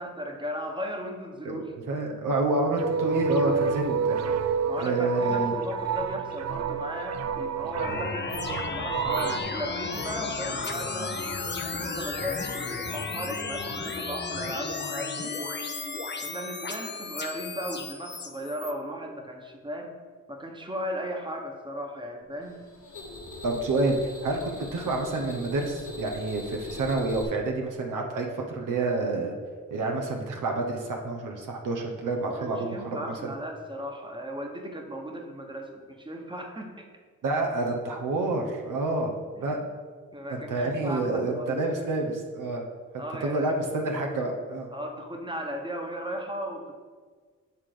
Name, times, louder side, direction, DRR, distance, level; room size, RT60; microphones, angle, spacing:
voice 1, 0.0-1.7 4.6-8.3 8.7-11.2 11.7-15.7 16.2-20.0 20.3-22.7 32.3-36.9 39.3-39.6 40.1-42.0 43.0-43.6 44.7-46.8, equal, 15° right, 3 dB, 1.2 m, -36 dB
voice 2, 1.4-4.1 4.8-5.5 23.4-29.3 29.7-33.3 37.2-39.1 39.4-39.6 40.3-42.6 43.2-44.7, right 2 dB, 75° right, 1 dB, 1.0 m, -28 dB
sound 1, 2.8-9.4, right 6 dB, 55° right, 0.5 m, -29 dB
sound 2, 7.8-18.7, left 4 dB, 35° left, 0.8 m, -34 dB
sound 3, 22.4-27.2, left 2 dB, 65° left, 1.2 m, -41 dB
8.1 x 3.7 x 4.9 m, 1.5 s
supercardioid pair, 50°, 32 cm